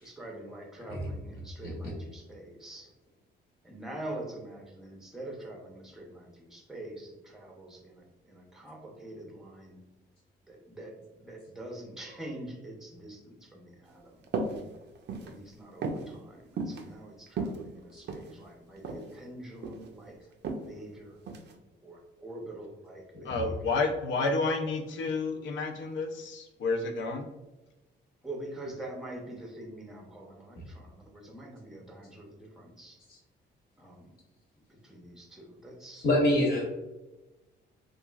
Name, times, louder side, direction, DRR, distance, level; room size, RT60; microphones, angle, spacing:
voice 1, 0.0-2.9 3.6-9.8 10.5-14.3 15.2-20.2 20.6-21.2 21.8-23.5 28.2-33.0 33.8-34.1 34.7-36.1, right 1 dB, ahead, 0 dB, 0.6 m, -45 dB
sound 1, 14.3-14.6 15.0-15.3 15.8-16.1 16.6-16.8 17.3-18.3 18.8-19.1 19.4-19.9 20.4-20.6 21.3-21.5, right 3 dB, 60° right, 0.4 m, -34 dB
voice 2, 23.3-27.3, left 3 dB, 70° left, 4 dB, 0.5 m, -30 dB
voice 3, 36.0-36.6, left 1 dB, 50° left, -4 dB, 0.9 m, -24 dB
2.9 x 2.4 x 2.3 m, 1.1 s
cardioid pair, 90°, 20 cm